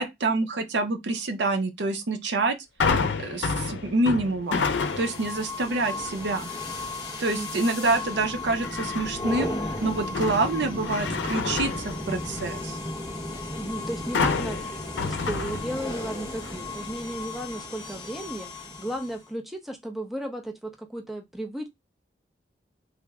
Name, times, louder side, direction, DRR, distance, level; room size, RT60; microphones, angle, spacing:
voice 1, 0.0-2.6 3.2-4.6 5.0-6.5 7.2-12.8, right 2 dB, 75° right, 0.6 m, -27 dB
sound 1, 2.8-5.3 5.8-6.2 8.6-9.3 9.8-12.6 14.1-16.1 16.4-16.5, left 4 dB, 85° left, 0.5 m, -29 dB
sound 2, 4.5-19.3, left 2 dB, 25° left, 0.8 m, -35 dB
voice 2, 7.4-7.7 13.6-21.7, right 1 dB, ahead, 0.4 m, -35 dB
3.4 x 2.0 x 3.4 m
head